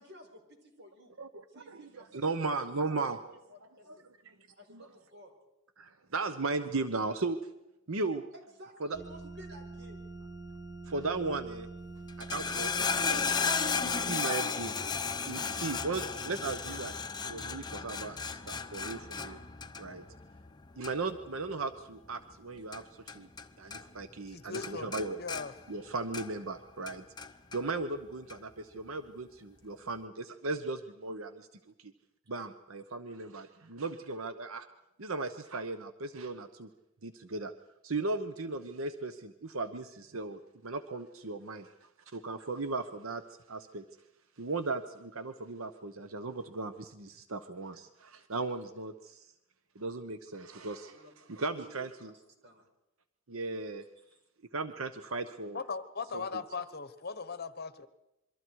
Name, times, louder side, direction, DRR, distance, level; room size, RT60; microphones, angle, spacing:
voice 1, 0.0-1.2 1.5-2.6 3.0-3.1 3.5-4.1 4.6-5.3 8.3-10.0 23.9-24.0 50.9-52.7 54.0-54.2, equal, 55° right, 4 dB, 4.7 m, -55 dB
voice 2, 1.2-1.8 2.2-3.2 3.9-4.0 4.2-4.3 4.7-4.9 5.8-7.4 7.9-8.2 8.8-8.9 10.9-11.7 12.2-13.4 13.8-14.7 15.3-19.4 19.8-20.1 20.8-23.3 23.6-25.2 25.7-27.0 27.5-31.5 31.8-31.9 32.3-34.7 35.0-36.7 37.0-37.5 37.8-43.8 44.4-49.3 49.7-51.0 51.3-52.1 53.3-53.8 54.5-55.6 56.1-56.4, right 3 dB, 70° right, 10 dB, 1.0 m, -37 dB
sound 1, 8.9-14.2, right 3 dB, 20° right, 2.5 m, -45 dB
sound 2, 12.1-23.5 23.7-24.3 24.5-26.5 26.9-27.6 28.3-28.4, left 5 dB, 20° left, 0.9 m, -35 dB
voice 3, 24.3-25.5 55.5-57.9, left 4 dB, 50° left, 12 dB, 1.2 m, -39 dB
27.5 x 23.5 x 4.7 m, 0.89 s
head